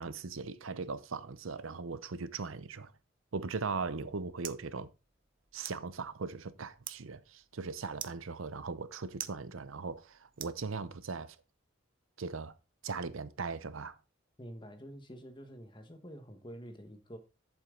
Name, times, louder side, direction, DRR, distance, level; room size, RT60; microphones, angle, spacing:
voice 1, 0.0-2.9 3.3-4.9 5.5-11.4 12.2-12.5 12.8-13.9, right 4 dB, 75° right, 0.7 m, -39 dB
sound 1, 3.6-11.2, right 11 dB, 40° right, 0.7 m, -50 dB
voice 2, 14.4-17.2, equal, 20° left, 1.2 m, -48 dB
8.4 x 7.3 x 3.8 m
head